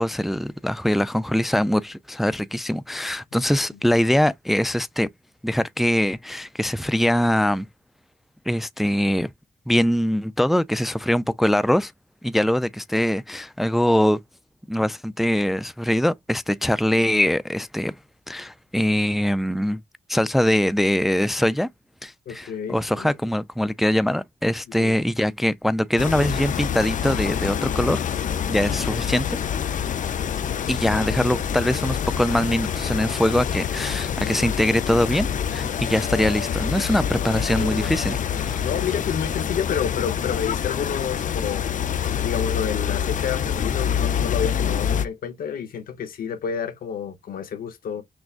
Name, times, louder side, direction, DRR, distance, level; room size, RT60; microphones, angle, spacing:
voice 1, 0.0-5.1 5.4-7.7 8.5-9.3 9.7-11.9 12.2-14.2 14.7-17.9 18.3-19.8 20.1-21.7 22.0-28.0 28.5-29.4 30.7-38.7, equal, ahead, 0.3 m, -22 dB
voice 2, 22.3-23.1 24.8-24.9 37.6-37.9 38.6-41.9 42.2-48.0, left 7 dB, 85° left, 0.9 m, -30 dB
sound 1, 26.0-45.1, left 8 dB, 60° left, 0.5 m, -26 dB
6.1 x 2.3 x 2.4 m
cardioid pair, 65°, 15 cm